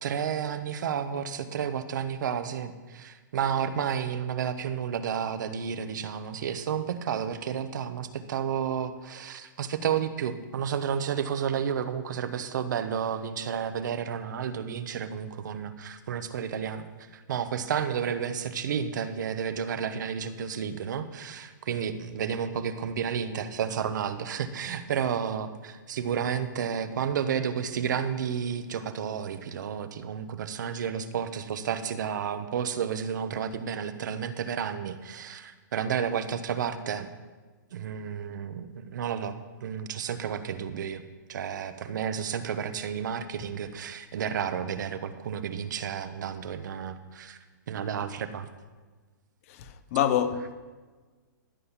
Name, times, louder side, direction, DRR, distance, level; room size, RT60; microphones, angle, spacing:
voice 1, 0.0-16.8 17.1-37.1 37.7-41.0 41.3-47.4 47.7-48.5, right 8 dB, 65° right, 1.0 m, -31 dB
voice 2, 49.5-50.5, left 10 dB, 45° left, 1.0 m, -27 dB
14.0 x 5.6 x 7.2 m
hypercardioid pair, 150°, 11 cm